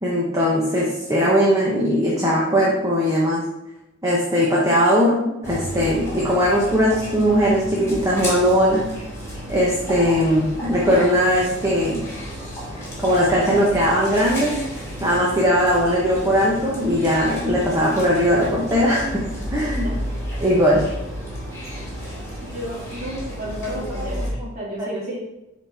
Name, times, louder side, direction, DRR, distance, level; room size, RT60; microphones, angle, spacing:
voice 1, 0.0-3.4 4.0-5.2 5.4-8.8 9.5-12.0 13.0-14.5 15.0-19.9 20.4-20.9 23.6-23.8 24.4-24.5 24.9-25.1, equal, 15° right, -5 dB, 1.2 m, -19 dB
sound 1, 5.4-24.3, equal, 15° left, 2.7 m, -32 dB
voice 2, 22.4-24.3 24.5-25.1, right 1 dB, 40° right, -4 dB, 2.3 m, -32 dB
9.9 x 4.2 x 3.6 m, 0.92 s
head